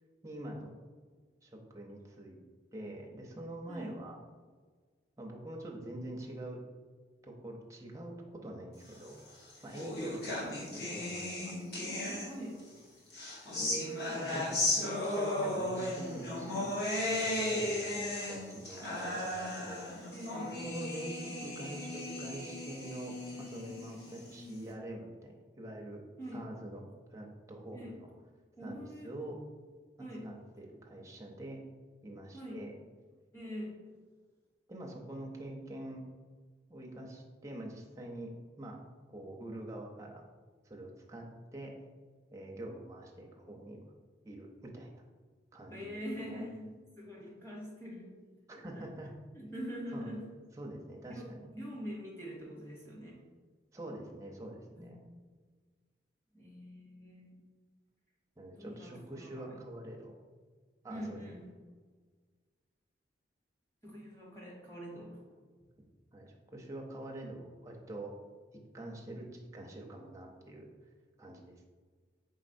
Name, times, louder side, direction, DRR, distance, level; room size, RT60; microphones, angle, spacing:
voice 1, 0.2-0.7 1.4-2.4 2.7-4.2 5.2-6.6 7.2-9.2 9.6-11.5 13.6-16.7 17.0-20.1 20.5-26.0 26.3-26.8 27.1-28.1 28.6-29.4 30.2-31.6 32.0-32.7 34.7-36.0 36.7-38.3 38.6-38.8 39.1-40.2 40.6-41.2 41.5-41.7 42.3-43.8 44.2-44.9 45.5-46.0 46.3-46.5 48.5-49.1 49.9-50.1 50.6-51.5 53.7-55.0 58.4-60.1 60.8-61.2 66.1-68.1 68.7-70.7 71.2-71.6, right 1 dB, 15° right, -1 dB, 0.5 m, -45 dB
sound 1, 9.2-12.6 13.1-24.6, left 1 dB, 60° left, 0.9 m, -36 dB
voice 2, 12.0-12.6 20.1-20.6 26.2-26.5 27.7-28.0 28.6-29.1 30.0-30.3 32.3-32.6 33.3-33.7 45.7-48.1 48.5-48.9 49.3-50.3 51.1-51.3 51.5-53.2 54.8-55.0 56.3-57.4 58.6-59.6 60.9-61.5 63.8-65.2, equal, 15° left, -4 dB, 0.9 m, -44 dB
4.1 x 3.8 x 2.6 m, 1.5 s
head